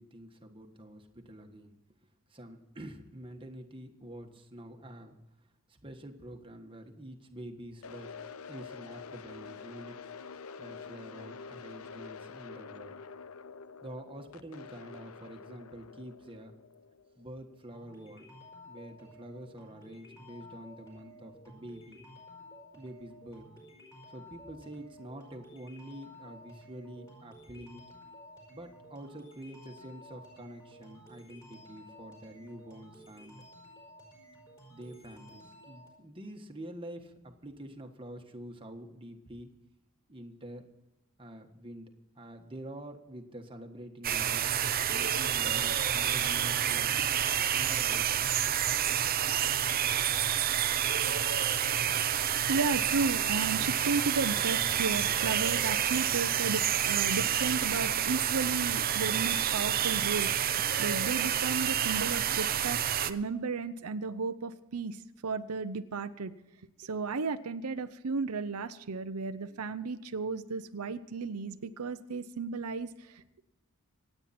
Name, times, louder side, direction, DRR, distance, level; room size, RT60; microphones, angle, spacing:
voice 1, 0.0-1.7 2.3-5.2 5.4-8.1 8.5-10.0 10.6-13.0 13.8-16.5 17.2-18.3 18.7-22.0 22.7-23.5 24.1-27.9 28.5-33.5 34.7-39.5 40.1-40.6 41.2-47.1 47.5-48.4, right 1 dB, 25° right, 3 dB, 1.5 m, -47 dB
sound 1, 7.8-17.9, left 5 dB, 70° left, 0.6 m, -47 dB
sound 2, 17.7-35.9, equal, 15° left, 5.2 m, -53 dB
sound 3, 44.0-63.1, right 9 dB, 40° right, 0.7 m, -29 dB
voice 2, 52.5-62.8 63.0-66.3 66.8-73.4, right 4 dB, 80° right, 10 dB, 0.7 m, -34 dB
26.0 x 9.0 x 4.3 m, 0.96 s
head